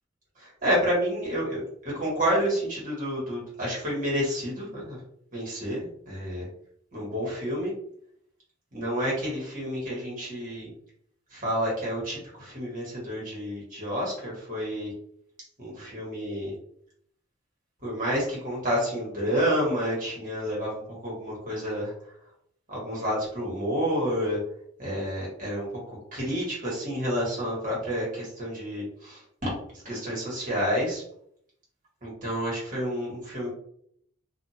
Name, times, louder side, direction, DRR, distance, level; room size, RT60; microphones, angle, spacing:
voice 1, 0.4-5.0 5.3-6.4 6.9-7.7 8.7-10.7 11.3-14.9 15.6-16.5 17.8-21.9 22.7-24.4 24.8-31.0 32.0-33.5, equal, 45° right, -5 dB, 1.5 m, -29 dB
2.6 x 2.5 x 2.7 m, 0.67 s
head